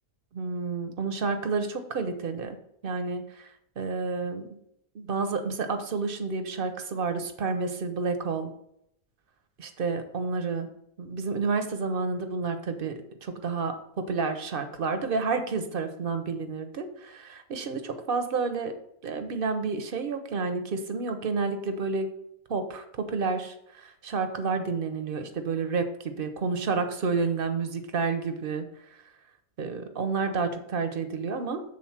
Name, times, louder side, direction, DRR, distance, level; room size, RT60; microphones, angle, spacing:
voice 1, 0.3-2.6 2.8-3.5 3.8-4.4 4.9-8.5 9.6-10.7 11.0-18.7 19.0-22.1 22.5-28.7 29.6-31.6, right 4 dB, 50° right, 8 dB, 0.8 m, -30 dB
7.6 x 3.8 x 5.8 m, 0.76 s
omnidirectional pair, 1.5 m